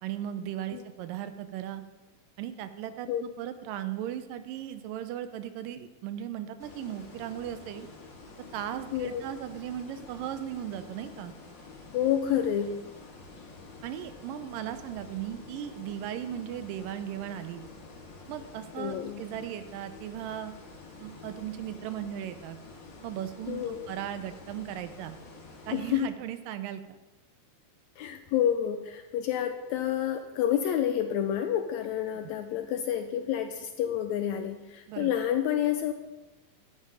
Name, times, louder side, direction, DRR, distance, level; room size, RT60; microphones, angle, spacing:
voice 1, 0.0-1.8 2.4-7.9 8.5-11.3 13.8-17.6 18.3-20.5 21.0-22.6 23.0-25.2 25.7-27.0 34.9-35.1, right 11 dB, 85° right, 11 dB, 2.4 m, -37 dB
sound 1, 6.6-26.0, left 3 dB, 40° left, 2.0 m, -48 dB
voice 2, 8.9-9.2 11.9-12.7 18.8-19.2 23.5-23.9 25.7-26.1 28.0-35.9, left 10 dB, 85° left, 7 dB, 1.6 m, -29 dB
11.0 x 8.5 x 4.9 m, 1.1 s
omnidirectional pair, 3.8 m